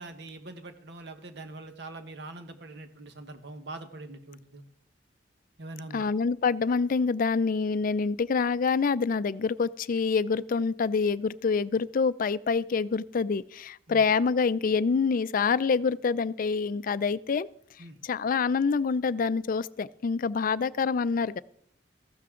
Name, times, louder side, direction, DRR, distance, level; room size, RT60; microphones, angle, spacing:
voice 1, 0.0-4.6 5.6-6.1 13.9-14.0 17.8-18.0, right 2 dB, 65° right, 8 dB, 1.3 m, -43 dB
voice 2, 5.9-17.5 18.0-21.4, left 5 dB, 50° left, 16 dB, 0.4 m, -26 dB
14.5 x 12.5 x 3.7 m, 0.67 s
head